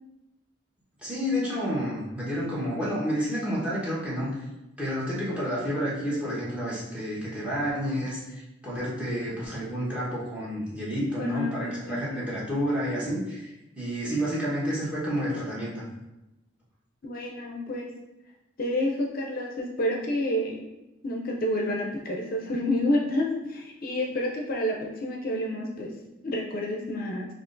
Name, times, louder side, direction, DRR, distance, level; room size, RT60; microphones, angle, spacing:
voice 1, 1.0-4.3 4.8-13.5 13.8-15.8, equal, 5° right, -7 dB, 1.2 m, -30 dB
voice 2, 11.2-12.2 17.0-17.9 18.6-20.6 21.0-25.9 26.2-27.3, left 1 dB, 50° left, 0 dB, 0.5 m, -29 dB
5.8 x 2.4 x 2.6 m, 0.96 s
head